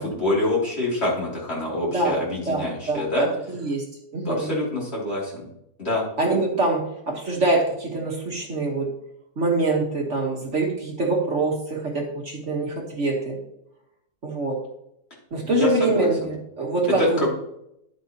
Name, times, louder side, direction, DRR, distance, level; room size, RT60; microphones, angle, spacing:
voice 1, 0.0-3.3 4.2-5.5 5.8-6.1 15.4-16.1 16.9-17.3, left 2 dB, 40° left, -5 dB, 3.2 m, -25 dB
voice 2, 2.5-3.9 4.1-4.5 6.2-8.9 9.4-13.4 14.2-14.6 15.3-17.3, right 2 dB, 50° right, 0 dB, 1.7 m, -24 dB
11.0 x 8.0 x 2.9 m, 0.79 s
omnidirectional pair, 1.6 m